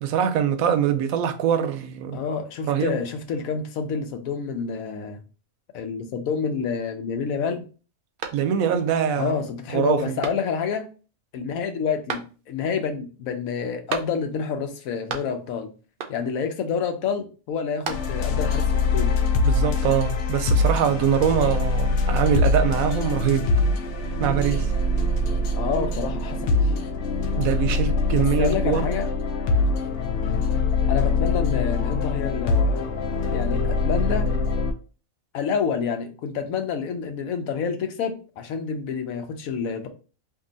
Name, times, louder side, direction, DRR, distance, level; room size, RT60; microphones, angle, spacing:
voice 1, 0.0-2.2 2.6-2.9 8.3-9.3 9.7-10.2 19.4-23.5 24.2-24.7 27.4-28.9, right 8 dB, 80° right, 1.0 m, -23 dB
voice 2, 2.1-5.2 5.7-7.6 9.2-10.9 11.3-15.7 16.1-19.1 25.6-26.7 28.1-29.1 30.9-32.9 33.3-34.3 35.3-39.9, left 6 dB, 85° left, 1.1 m, -28 dB
sound 1, 8.2-8.9 9.3-9.4 10.2-10.8 12.1-12.7 13.9-14.5 14.8-15.6 16.0-16.5 17.5-18.4, right 6 dB, 60° right, 0.5 m, -35 dB
sound 2, 17.9-34.7, left 3 dB, 65° left, 0.8 m, -23 dB
2.7 x 2.6 x 3.8 m
omnidirectional pair, 1.4 m